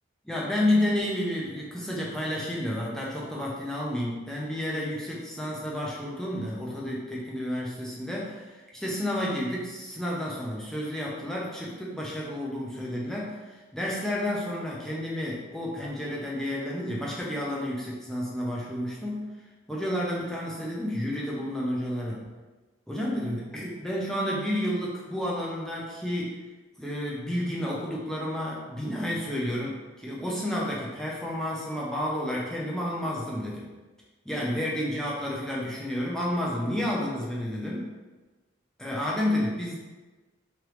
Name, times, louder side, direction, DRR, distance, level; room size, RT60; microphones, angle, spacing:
voice 1, 0.2-19.3 19.7-22.2 22.9-26.4 26.8-33.7 34.2-37.9 38.8-39.8, left 1 dB, 5° left, -5 dB, 0.6 m, -31 dB
3.6 x 3.3 x 3.1 m, 1.2 s
head